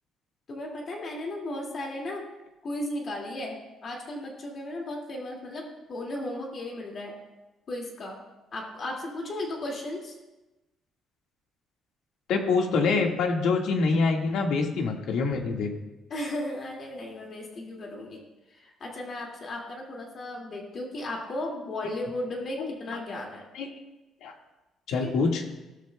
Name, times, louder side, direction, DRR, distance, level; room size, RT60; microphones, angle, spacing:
voice 1, 0.5-2.2 2.6-7.1 7.7-8.2 8.5-10.2 16.1-18.2 18.5-23.5 24.9-25.1, left 1 dB, 35° left, -1 dB, 2.3 m, -35 dB
voice 2, 12.3-15.7 22.6-23.0 23.6-23.7 24.2-24.3 24.9-25.4, left 4 dB, 80° left, 2 dB, 1.8 m, -25 dB
17.5 x 13.0 x 2.3 m, 1.1 s
cardioid pair, 165°, 0 cm